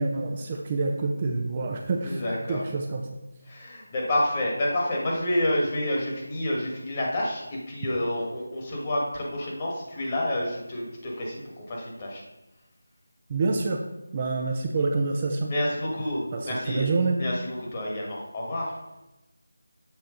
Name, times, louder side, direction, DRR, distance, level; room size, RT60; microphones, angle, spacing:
voice 1, 0.0-2.2 2.5-3.2 13.3-13.8 14.1-15.5 16.3-17.2, right 3 dB, 30° right, 2 dB, 0.5 m, -27 dB
voice 2, 2.0-2.6 3.5-12.2 15.5-16.9 17.2-18.8, left 1 dB, 25° left, -3 dB, 1.4 m, -29 dB
7.2 x 4.3 x 3.8 m, 1.0 s
figure-of-eight pair, 165°, 0 cm